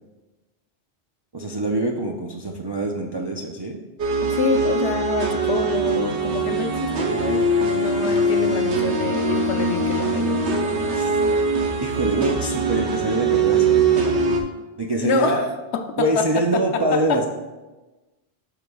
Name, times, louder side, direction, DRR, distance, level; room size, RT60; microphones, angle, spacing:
voice 1, 1.3-3.8 10.9-11.1 11.8-14.2 14.8-15.4 16.0-17.3, right 2 dB, 40° right, -1 dB, 0.3 m, -24 dB
sound 1, 4.0-14.4, right 3 dB, 80° right, 1.1 m, -22 dB
voice 2, 4.3-10.4 15.0-17.3, left 5 dB, 80° left, 7 dB, 0.9 m, -26 dB
12.0 x 4.8 x 2.3 m, 1.2 s
omnidirectional pair, 1.1 m